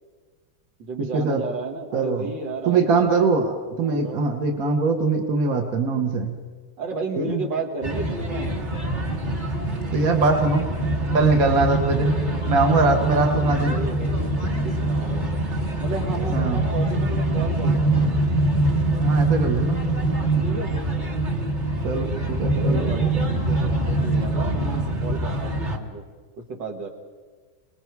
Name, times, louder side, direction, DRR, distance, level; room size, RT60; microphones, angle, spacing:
voice 1, 0.8-3.3 3.8-4.2 6.8-8.6 11.0-11.3 12.6-15.3 15.8-18.1 20.4-20.7 22.6-26.1 26.4-26.9, right 3 dB, 75° right, 2 dB, 2.6 m, -33 dB
voice 2, 1.9-2.3 2.7-6.4 7.2-7.4 9.9-10.6 11.1-12.2 12.5-13.8 16.3-16.6 19.0-19.8 21.8-23.1, right 3 dB, 50° right, 4 dB, 1.8 m, -22 dB
sound 1, 7.8-25.8, right 1 dB, 30° right, 1.5 m, -24 dB
27.5 x 20.5 x 4.7 m, 1.4 s
omnidirectional pair, 2.0 m